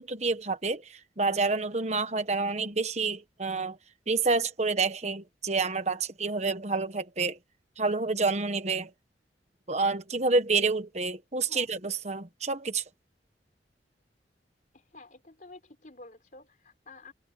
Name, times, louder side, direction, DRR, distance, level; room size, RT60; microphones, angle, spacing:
voice 1, 0.0-3.8 4.1-7.4 7.8-8.9 9.7-12.8, right 4 dB, 40° right, 1.3 m, -28 dB
voice 2, 14.7-17.1, left 3 dB, 45° left, 4.2 m, -50 dB
head